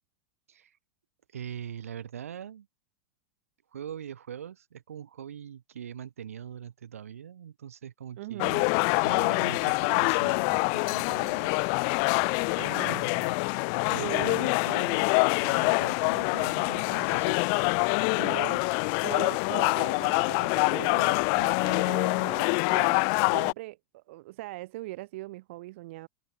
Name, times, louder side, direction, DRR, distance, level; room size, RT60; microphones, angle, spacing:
voice 1, 1.3-2.7 3.7-8.6 9.0-11.6 12.9-13.3 13.9-15.1 15.4-17.4, right 9 dB, 90° right, 7.6 m, -42 dB
voice 2, 8.2-8.7 12.6-13.2 14.0-14.5 18.1-18.6 19.0-26.1, right 19 dB, 65° right, 2.9 m, -40 dB
sound 1, 8.4-23.5, left 40 dB or more, 55° left, 0.9 m, -25 dB
hypercardioid pair, 115°, 7 cm